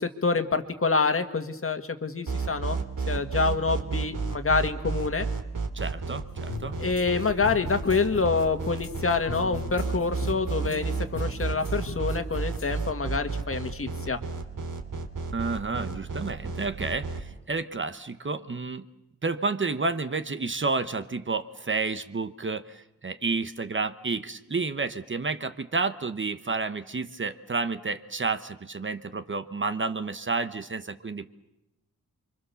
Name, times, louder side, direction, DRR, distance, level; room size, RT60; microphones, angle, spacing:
voice 1, 0.0-5.3 6.8-14.2, left 4 dB, 40° left, 7 dB, 1.8 m, -27 dB
sound 1, 2.3-17.2, right 4 dB, 70° right, 2.7 m, -31 dB
voice 2, 5.7-6.8 15.3-18.8 19.2-31.3, right 4 dB, 35° right, 10 dB, 1.0 m, -30 dB
sound 2, 6.5-12.9, left 5 dB, 85° left, 1.8 m, -41 dB
29.5 x 24.0 x 7.0 m, 0.91 s
wide cardioid pair, 145°, 33 cm